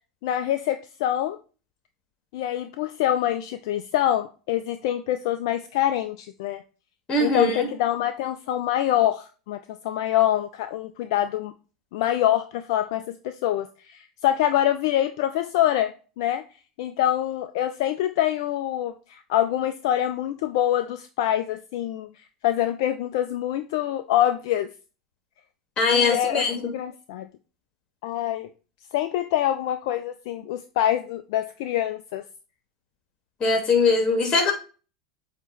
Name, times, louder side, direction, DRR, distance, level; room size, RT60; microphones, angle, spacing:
voice 1, 0.2-1.4 2.3-6.6 7.2-9.6 9.8-11.5 11.9-13.1 13.4-16.4 16.8-22.1 22.4-24.7 25.9-27.3 28.0-28.5 28.9-32.2, left 12 dB, 60° left, 9 dB, 0.4 m, -25 dB
voice 2, 7.1-7.7 25.8-26.6 33.4-34.5, left 4 dB, 35° left, 4 dB, 2.4 m, -21 dB
7.9 x 3.0 x 4.1 m, 0.35 s
hypercardioid pair, 85°, 3 cm